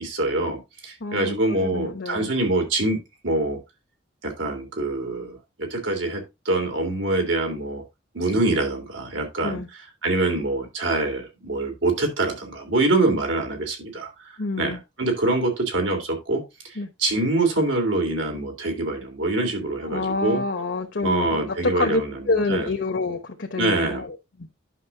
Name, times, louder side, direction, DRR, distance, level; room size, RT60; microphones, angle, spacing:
voice 1, 0.0-3.6 4.2-7.8 8.1-9.6 10.0-14.1 14.6-16.4 17.0-20.4 21.0-22.7 23.5-24.0, right 2 dB, 85° right, 3.2 m, -25 dB
voice 2, 1.0-2.3 9.4-9.7 14.4-14.8 16.8-16.9 19.8-24.5, left 3 dB, 65° left, 1.0 m, -27 dB
11.0 x 6.3 x 2.7 m
head